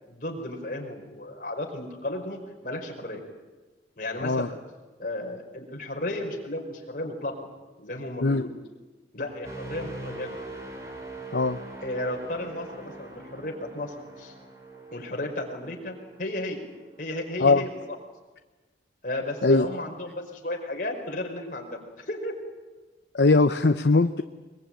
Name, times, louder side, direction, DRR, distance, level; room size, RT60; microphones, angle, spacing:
voice 1, 0.1-3.2 4.0-4.5 5.0-7.3 7.8-8.5 9.1-10.4 11.8-14.3 14.9-16.6 17.0-17.7 19.0-22.3, left 1 dB, 50° left, 1 dB, 5.0 m, -34 dB
sound 1, 9.4-17.3 17.7-18.0, right 2 dB, 15° right, 4.2 m, -43 dB
voice 2, 23.1-24.2, left 3 dB, 70° left, 9 dB, 0.7 m, -20 dB
22.5 x 22.0 x 9.0 m, 1.2 s
head